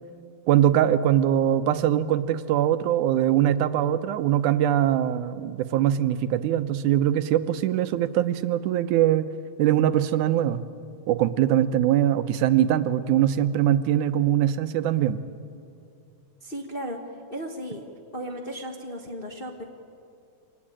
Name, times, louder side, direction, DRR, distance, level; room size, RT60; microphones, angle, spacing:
voice 1, 0.5-9.3 9.6-10.6 11.1-15.2, right 11 dB, 90° right, 12 dB, 2.3 m, -22 dB
voice 2, 16.4-17.0 17.3-17.8 18.1-19.6, equal, 30° left, 1 dB, 1.0 m, -35 dB
25.0 x 18.5 x 8.8 m, 2.5 s
omnidirectional pair, 3.5 m